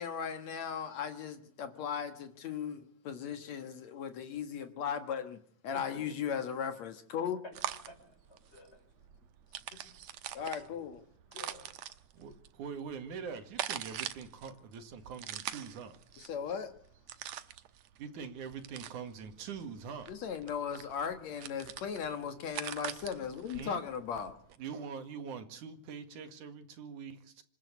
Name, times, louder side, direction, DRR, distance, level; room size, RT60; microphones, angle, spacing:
voice 1, 0.0-5.4 5.6-7.4 10.3-11.0 16.2-16.7 20.1-24.3, left 7 dB, 65° left, 2.7 m, -37 dB
voice 2, 5.7-6.2 7.4-7.5 7.9-8.8 9.7-9.8 10.6-10.9 11.3-11.8 17.3-17.4 19.4-19.5, left 2 dB, 20° left, 5.6 m, -52 dB
sound 1, 7.5-24.6, right 11 dB, 70° right, 2.2 m, -44 dB
voice 3, 12.1-16.0 18.0-20.1 23.5-23.8 24.6-27.4, right 6 dB, 85° right, 3.4 m, -43 dB
26.5 x 12.5 x 8.2 m
omnidirectional pair, 3.4 m